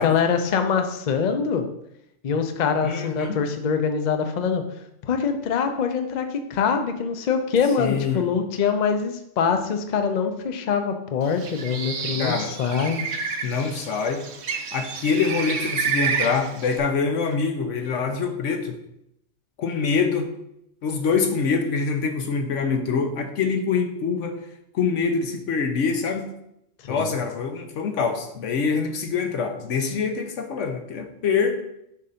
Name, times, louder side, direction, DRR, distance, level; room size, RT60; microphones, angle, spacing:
voice 1, 0.0-1.7 2.2-4.6 5.0-13.0 26.9-27.1, left 6 dB, 50° left, 6 dB, 0.6 m, -24 dB
voice 2, 2.8-3.4 7.8-8.2 12.2-12.5 13.4-14.2 14.7-18.8 19.6-20.3 20.8-24.4 24.7-26.3 26.9-31.6, left 5 dB, 80° left, 5 dB, 1.1 m, -25 dB
Bird, 11.3-16.8, right 5 dB, 65° right, 0.9 m, -29 dB
7.2 x 2.6 x 5.6 m, 0.78 s
omnidirectional pair, 1.3 m